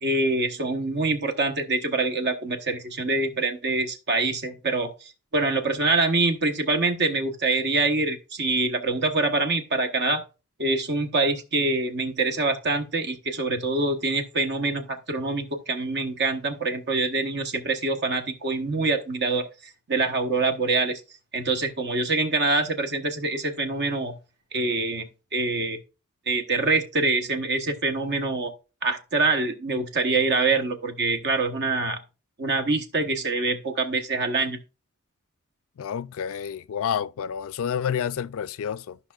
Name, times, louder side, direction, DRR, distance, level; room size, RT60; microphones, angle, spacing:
voice 1, 0.0-4.9 5.3-10.2 10.6-19.5 19.9-21.0 21.3-24.1 24.5-25.8 26.3-28.5 28.8-32.0 32.4-34.6, right 3 dB, 50° right, 1.1 m, -25 dB
voice 2, 35.8-39.0, left 8 dB, 70° left, 0.4 m, -29 dB
13.0 x 5.5 x 2.4 m
head